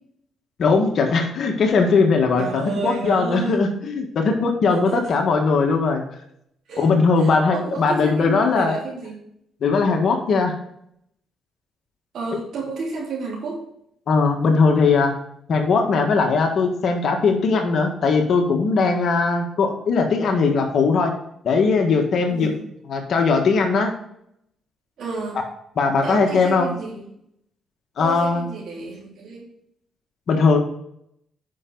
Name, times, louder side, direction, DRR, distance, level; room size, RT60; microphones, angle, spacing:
voice 1, 0.6-6.0 6.8-8.8 9.6-10.5 14.1-15.1 15.5-21.1 21.4-22.5 22.9-23.9 25.8-26.7 28.0-28.5 30.3-30.6, left 4 dB, 60° left, 3 dB, 1.6 m, -19 dB
voice 2, 2.4-3.6 4.7-5.2 6.7-6.9 7.2-9.2 12.1-13.6 22.3-22.6 25.0-25.4 26.0-27.0 28.0-29.5, right 4 dB, 65° right, -3 dB, 3.4 m, -31 dB
9.6 x 5.8 x 3.9 m, 0.73 s
cardioid pair, 90°, 0 cm